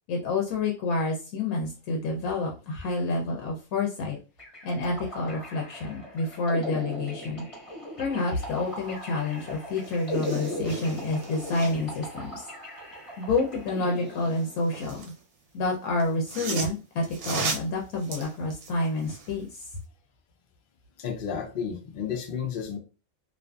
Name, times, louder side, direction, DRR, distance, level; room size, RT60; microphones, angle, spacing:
voice 1, 0.1-4.2 4.6-7.5 8.0-12.4 13.2-15.1 15.5-19.7, left 3 dB, 85° left, 0 dB, 1.0 m, -29 dB
sound 1, 4.4-14.8, equal, 25° left, 0.9 m, -38 dB
sound 2, 9.4-9.5 9.7-12.0 14.1-15.2 16.0-19.4 19.8-19.9, right 4 dB, 85° right, 1.1 m, -36 dB
voice 2, 21.0-22.8, left 7 dB, 60° left, 2 dB, 0.5 m, -32 dB
2.5 x 2.5 x 2.2 m, 0.34 s
omnidirectional pair, 1.5 m